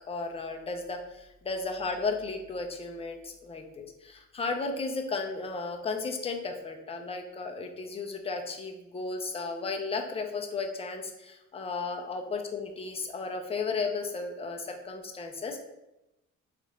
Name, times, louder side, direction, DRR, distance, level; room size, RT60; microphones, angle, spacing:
voice 1, 0.1-15.6, left 4 dB, 20° left, 3 dB, 0.5 m, -34 dB
3.0 x 2.5 x 4.2 m, 0.92 s
cardioid pair, 90°, 30 cm